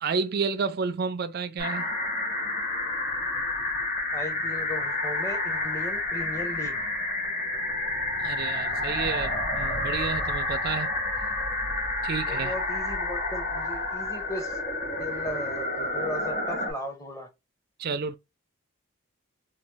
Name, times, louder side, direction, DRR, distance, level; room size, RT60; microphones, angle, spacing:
voice 1, 0.0-1.9 8.2-10.9 12.0-12.5 17.8-18.2, right 5 dB, 45° right, 0.3 m, -30 dB
sound 1, 1.6-16.7, left 2 dB, 35° left, 1.3 m, -29 dB
voice 2, 4.1-6.8 12.3-14.6 15.0-17.3, left 1 dB, 15° left, 0.7 m, -37 dB
3.0 x 2.3 x 3.3 m
head